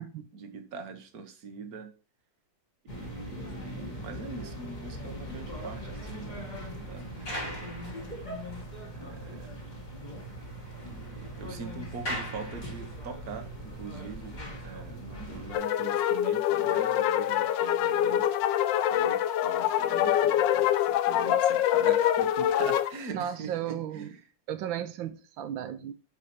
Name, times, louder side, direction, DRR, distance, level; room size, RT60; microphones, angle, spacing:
voice 1, 0.3-1.9 2.8-6.5 6.8-7.7 8.9-9.6 10.8-14.4 14.6-18.6 18.9-24.2, right 4 dB, 55° right, 7 dB, 1.6 m, -43 dB
sound 1, 2.9-15.6, equal, 25° left, 1.9 m, -40 dB
sound 2, 5.1-8.6 9.1-9.2 9.6-9.7 10.0-13.2, equal, 60° left, 4.1 m, -42 dB
sound 3, 15.5-22.9, left 11 dB, 80° left, 1.3 m, -25 dB
voice 2, 23.1-24.1 24.5-25.9, right 10 dB, 90° right, 11 dB, 1.5 m, -34 dB
9.6 x 5.0 x 4.3 m, 0.37 s
omnidirectional pair, 2.1 m